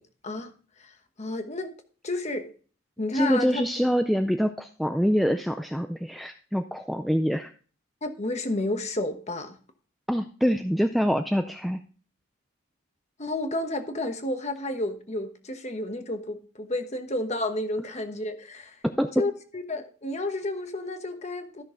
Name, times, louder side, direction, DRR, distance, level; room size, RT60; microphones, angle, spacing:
voice 1, 0.8-1.7 2.0-2.5 3.0-3.7 8.0-9.6 13.2-18.8 19.2-21.6, left 2 dB, 30° left, 7 dB, 1.1 m, -31 dB
voice 2, 3.1-7.5 10.1-11.8 18.8-19.1, equal, ahead, 6 dB, 0.3 m, -25 dB
13.5 x 6.3 x 3.7 m, 0.40 s
head